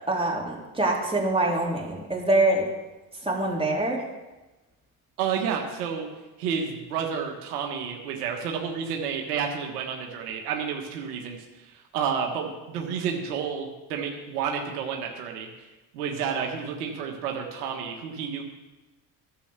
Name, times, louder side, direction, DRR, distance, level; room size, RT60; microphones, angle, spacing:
voice 1, 0.1-2.7 3.2-4.0, right 2 dB, 10° right, -3 dB, 3.8 m, -24 dB
voice 2, 5.2-6.1 6.4-15.5 15.9-18.4, right 7 dB, 90° right, 2 dB, 1.5 m, -30 dB
11.5 x 7.1 x 6.8 m, 1.1 s
hypercardioid pair, 60°, 45 cm